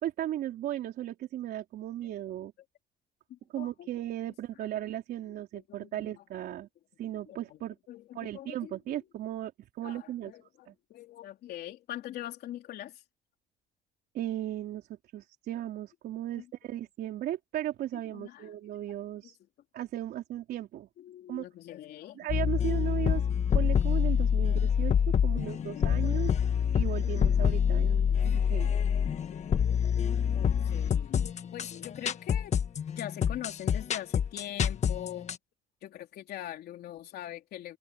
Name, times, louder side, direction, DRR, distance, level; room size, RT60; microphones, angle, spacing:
voice 1, 0.0-2.5 3.5-6.7 7.0-7.8 8.1-10.3 10.7-10.8 14.1-14.9 15.1-19.4 19.7-20.9 21.3-21.4 22.2-23.3 23.5-24.9 25.2-26.3 26.7-28.7, right 12 dB, 70° right, 3.8 m, -36 dB
voice 2, 3.3-3.9 4.6-4.7 5.5-6.2 7.3-7.6 7.9-9.0 9.8-13.0 16.4-16.5 18.1-18.5 19.2-19.3 21.0-22.4 23.5-23.6 24.4-24.6 25.3-26.4 26.9-27.1 27.8-28.2 28.6-30.0 30.3-32.6 33.0-35.4 35.8-37.8, left 12 dB, 70° left, 3.3 m, -44 dB
sound 1, 22.3-35.4, left 8 dB, 45° left, 1.4 m, -26 dB
cardioid pair, 110°, 17 cm